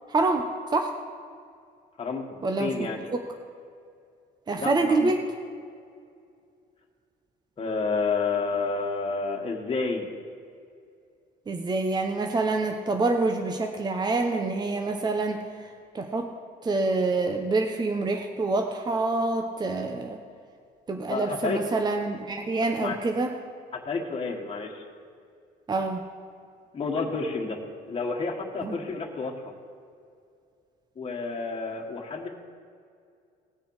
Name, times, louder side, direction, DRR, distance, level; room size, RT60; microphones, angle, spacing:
voice 1, 0.1-0.9 2.4-3.2 4.5-5.2 11.5-16.3 16.6-20.2 20.9-23.3 25.7-26.0 28.6-28.8, right 3 dB, 25° right, 4 dB, 0.9 m, -27 dB
voice 2, 2.0-3.1 4.6-5.1 7.6-10.1 21.1-21.6 22.8-23.0 23.8-24.9 26.7-27.6 27.9-29.4 30.9-32.3, left 4 dB, 30° left, 0 dB, 1.6 m, -30 dB
19.0 x 6.7 x 4.8 m, 2.3 s
cardioid pair, 110°, 17 cm